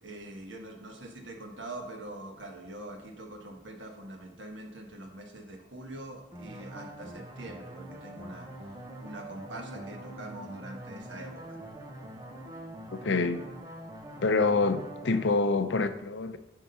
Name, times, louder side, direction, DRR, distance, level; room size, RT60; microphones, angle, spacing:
voice 1, 0.0-8.5 9.0-11.6, right 1 dB, 85° right, 1.4 m, -44 dB
sound 1, 6.3-15.2, right 1 dB, 20° right, 0.9 m, -44 dB
voice 2, 12.9-13.5 14.2-16.4, left 3 dB, 75° left, 0.6 m, -26 dB
10.5 x 3.7 x 5.5 m
head